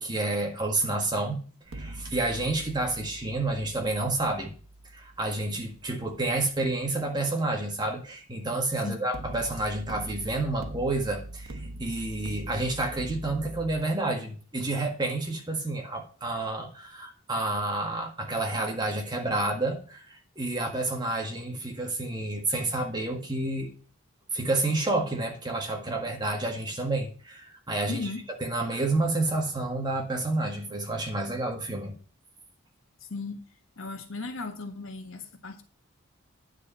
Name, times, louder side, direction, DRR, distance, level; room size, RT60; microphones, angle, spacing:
voice 1, 0.0-4.5 4.9-23.7 24.3-28.1 28.4-31.9, right 2 dB, 20° right, 2 dB, 1.6 m, -29 dB
sound 1, 1.7-6.7 9.1-13.8, right 1 dB, 90° right, 1.3 m, -42 dB
voice 2, 27.9-28.2 33.0-33.4 33.8-35.6, left 3 dB, 75° left, 5 dB, 1.5 m, -36 dB
9.9 x 4.8 x 6.9 m, 0.40 s
head